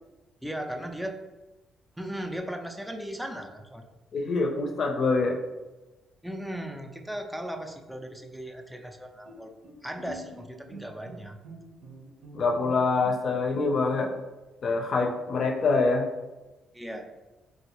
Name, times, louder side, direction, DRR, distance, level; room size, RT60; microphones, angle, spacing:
voice 1, 0.4-1.1 2.0-3.9 6.2-9.5 9.8-11.4 16.7-17.1, equal, 5° right, 3 dB, 0.4 m, -37 dB
voice 2, 4.1-5.4 12.3-14.1 14.6-16.1, left 3 dB, 55° left, 2 dB, 0.5 m, -25 dB
Bowed string instrument, 9.3-14.1, right 2 dB, 65° right, 0.7 m, -47 dB
3.2 x 2.4 x 2.9 m, 1.1 s
cardioid pair, 90°, 0 cm